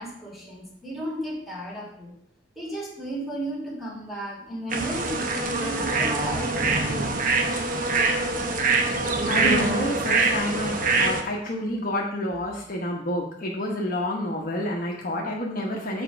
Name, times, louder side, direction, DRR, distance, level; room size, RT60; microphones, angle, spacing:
voice 1, 0.0-2.1 2.6-7.5, right 1 dB, ahead, -6 dB, 2.5 m, -35 dB
sound 1, 4.7-11.2, right 3 dB, 50° right, 0.9 m, -24 dB
voice 2, 9.0-16.0, left 1 dB, 50° left, -1 dB, 1.1 m, -29 dB
7.4 x 4.4 x 5.0 m, 0.71 s
head